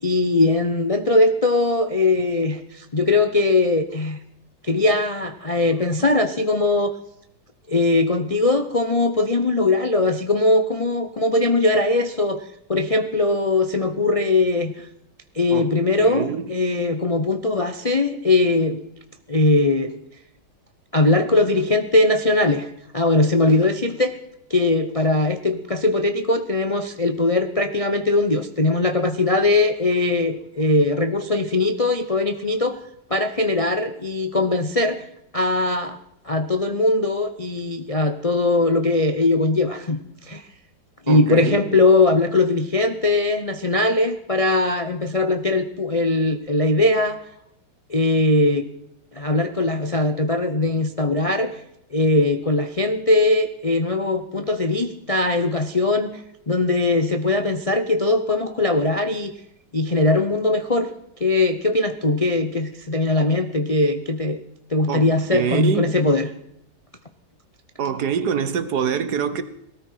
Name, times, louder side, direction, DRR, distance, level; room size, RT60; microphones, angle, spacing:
voice 1, 0.0-4.2 4.6-6.9 7.7-14.9 15.3-18.8 19.3-19.9 20.9-22.7 22.9-24.2 24.5-32.8 33.1-35.1 35.3-36.0 36.2-40.4 41.1-47.2 47.9-48.6 49.1-51.5 51.9-59.3 59.7-60.9 61.2-64.4 64.7-66.3, left 2 dB, 35° left, 0.5 m, -20 dB
voice 2, 16.0-16.4 41.1-41.6 64.9-65.9 67.8-69.4, right 7 dB, 65° right, 1.6 m, -25 dB
18.5 x 13.5 x 5.7 m
omnidirectional pair, 1.9 m